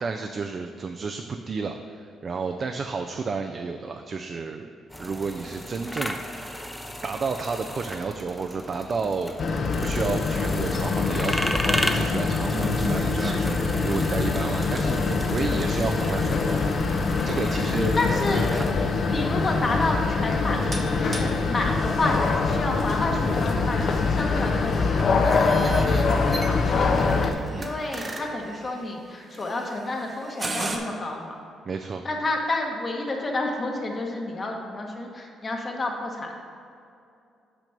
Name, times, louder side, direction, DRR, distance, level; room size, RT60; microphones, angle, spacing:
voice 1, 0.0-4.7 5.0-6.8 7.0-9.3 9.8-18.0 18.3-19.0 27.5-27.7 31.7-32.0, right 4 dB, 40° right, 5 dB, 0.4 m, -31 dB
sound 1, 4.9-18.7, left 1 dB, 5° left, 0.6 m, -35 dB
sound 2, 9.4-27.3, left 4 dB, 55° left, 0.6 m, -24 dB
sound 3, 12.4-30.8, right 2 dB, 25° right, 0.9 m, -38 dB
voice 2, 18.0-18.4 18.7-20.7 21.0-31.4 32.0-36.3, left 2 dB, 35° left, 1 dB, 1.2 m, -30 dB
6.0 x 5.2 x 5.8 m, 2.5 s
cardioid pair, 90°, 0 cm